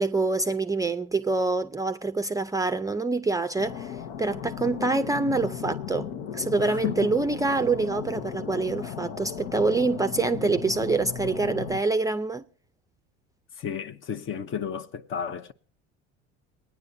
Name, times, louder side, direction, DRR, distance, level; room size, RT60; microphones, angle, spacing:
voice 1, 0.0-12.4, right 3 dB, 10° right, 0.5 m, -26 dB
sound 1, 3.6-11.8, left 8 dB, 75° left, 1.0 m, -36 dB
voice 2, 6.6-7.1 13.6-15.5, left 8 dB, 40° left, 0.8 m, -32 dB
22.5 x 9.7 x 2.7 m
supercardioid pair, 100°, 31 cm